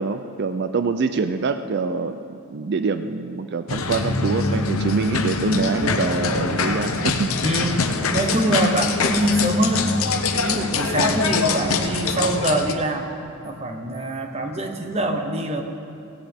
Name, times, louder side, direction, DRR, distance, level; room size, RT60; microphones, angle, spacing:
voice 1, 0.0-7.3, right 4 dB, 50° right, 10 dB, 0.4 m, -25 dB
sound 1, 3.7-12.7, left 4 dB, 80° left, 0.9 m, -23 dB
voice 2, 7.4-9.9 10.3-13.1 13.4-15.6, right 1 dB, 30° right, 5 dB, 1.1 m, -24 dB
16.5 x 16.5 x 3.5 m, 2.6 s
head